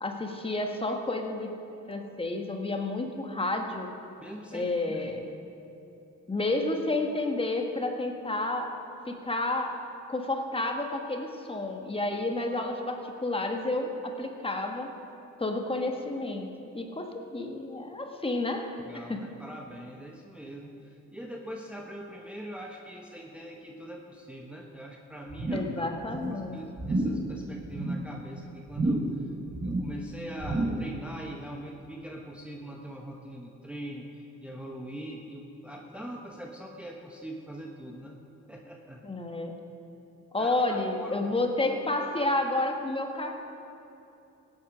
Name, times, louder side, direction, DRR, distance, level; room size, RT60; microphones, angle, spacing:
voice 1, 0.0-1.5 1.9-3.9 4.5-5.3 6.3-8.7 9.1-14.9 15.4-16.5 16.7-18.7 18.9-19.2 25.5-26.6 39.0-39.6 40.3-43.3, left 2 dB, 20° left, 3 dB, 1.4 m, -30 dB
voice 2, 4.2-5.2 18.8-25.9 26.3-29.3 29.6-38.2 38.5-39.0 40.4-41.3, right 1 dB, 5° right, 0 dB, 1.0 m, -42 dB
sound 1, 25.3-25.8 26.0-26.4 26.8-27.3 27.6-28.1 28.7-29.2 29.5-30.0 30.4-30.9 31.3-31.4, right 2 dB, 25° right, 1.4 m, -30 dB
16.0 x 8.7 x 6.2 m, 2.9 s
cardioid pair, 90°, 30 cm